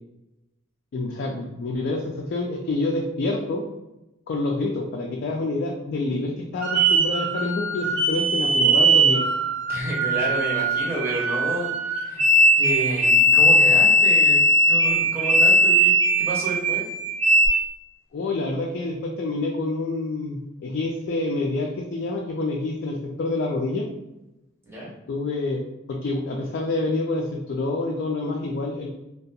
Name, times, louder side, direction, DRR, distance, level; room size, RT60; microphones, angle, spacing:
voice 1, 0.9-3.6 4.3-9.2 18.1-23.9 25.1-25.6 25.9-28.9, left 2 dB, 55° left, -1 dB, 0.3 m, -27 dB
sound 1, 6.6-17.5, right 1 dB, 80° right, 0.6 m, -19 dB
voice 2, 9.7-12.2 12.6-16.8 24.6-24.9, equal, 15° right, -4 dB, 0.7 m, -30 dB
2.4 x 2.2 x 2.7 m, 0.95 s
head